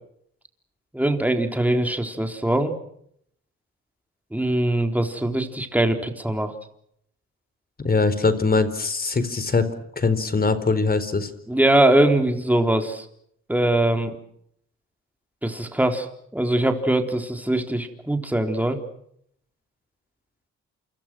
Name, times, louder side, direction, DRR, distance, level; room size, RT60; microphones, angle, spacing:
voice 1, 0.9-2.7 4.3-6.5 11.5-13.1 13.5-14.2 15.4-16.1 16.3-18.8, right 1 dB, 5° right, 5 dB, 3.9 m, -22 dB
voice 2, 7.8-9.7 10.0-11.3, left 4 dB, 30° left, 13 dB, 4.2 m, -22 dB
28.5 x 26.5 x 6.3 m, 0.70 s
cardioid pair, 90°, 30 cm